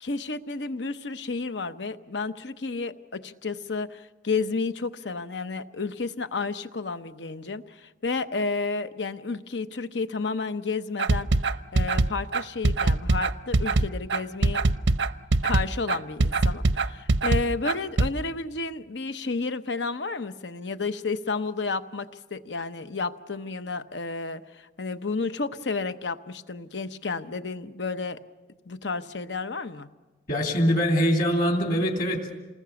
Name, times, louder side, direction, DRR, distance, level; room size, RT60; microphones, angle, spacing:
voice 1, 0.0-11.3 11.7-14.6 15.4-28.2 28.7-29.9, left 4 dB, 80° left, 11 dB, 1.0 m, -31 dB
sound 1, 11.0-18.1, right 2 dB, 85° right, 0.7 m, -22 dB
voice 2, 30.3-32.3, equal, 50° left, 2 dB, 2.9 m, -23 dB
28.0 x 20.0 x 7.1 m, 1.2 s
head